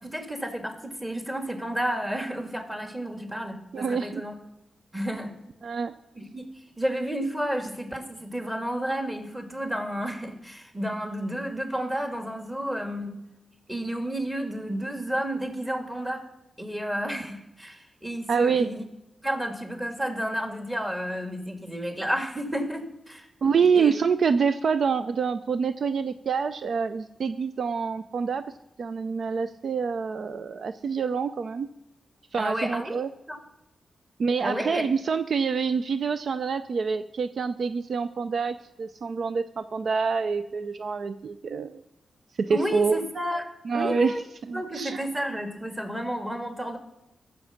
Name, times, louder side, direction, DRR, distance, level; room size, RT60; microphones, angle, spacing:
voice 1, 0.0-4.4 4.9-5.3 6.2-13.2 13.7-16.3 16.6-18.8 19.2-23.3 23.6-23.9 32.4-33.4 34.4-34.8 42.5-43.4 43.7-44.2 44.5-46.8, equal, 15° right, 4 dB, 2.5 m, -31 dB
voice 2, 3.7-4.2 5.6-5.9 18.3-18.7 23.4-28.5 28.8-31.7 32.3-33.1 34.2-41.8 42.4-43.0 43.7-44.2 44.5-45.0, right 5 dB, 70° right, 11 dB, 0.5 m, -26 dB
14.0 x 7.1 x 7.2 m, 0.91 s
cardioid pair, 55°, 0 cm